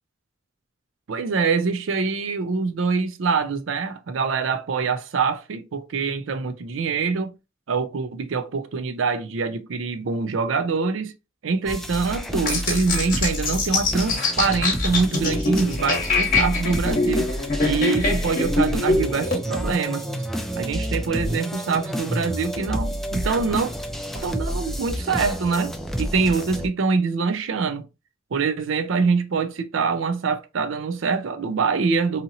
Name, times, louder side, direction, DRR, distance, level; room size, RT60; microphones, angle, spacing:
voice 1, 1.1-7.3 7.7-11.1 11.4-17.3 17.6-20.0 20.6-23.7 24.1-25.7 26.0-27.9 28.3-32.2, right 5 dB, 75° right, 0.5 m, -24 dB
sound 1, 11.7-26.7, equal, ahead, 0.3 m, -29 dB
sound 2, 12.5-19.4, left 3 dB, 45° left, 0.9 m, -24 dB
2.8 x 2.7 x 2.6 m
head